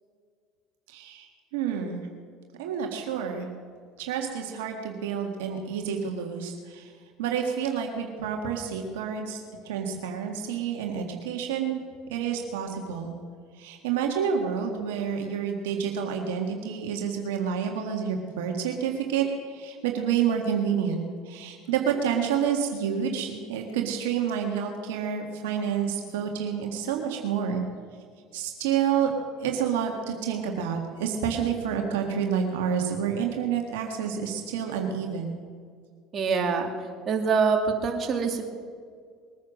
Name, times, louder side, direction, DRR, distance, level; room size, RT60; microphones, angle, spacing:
voice 1, 0.9-2.0 2.6-3.5 4.0-6.9 7.2-11.8 12.1-13.2 13.5-27.6 28.3-29.1 29.4-35.4, right 7 dB, 85° right, 2 dB, 1.7 m, -29 dB
voice 2, 36.1-36.7 37.1-38.4, right 5 dB, 40° right, 2 dB, 2.5 m, -24 dB
21.0 x 9.5 x 6.4 m, 2.1 s
hypercardioid pair, 85°, 0 cm